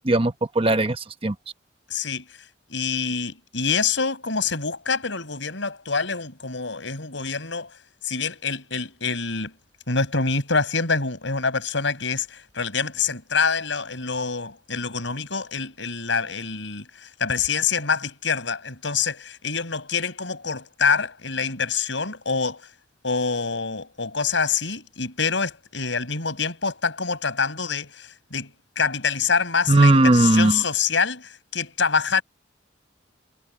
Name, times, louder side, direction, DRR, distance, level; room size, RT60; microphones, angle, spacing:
voice 1, 0.0-1.3 29.7-30.6, right 2 dB, 30° right, 1.0 m, -18 dB
voice 2, 1.9-2.4 2.7-7.7 8.0-9.5 9.9-22.7 23.0-32.2, left 5 dB, 70° left, 6.2 m, -26 dB
head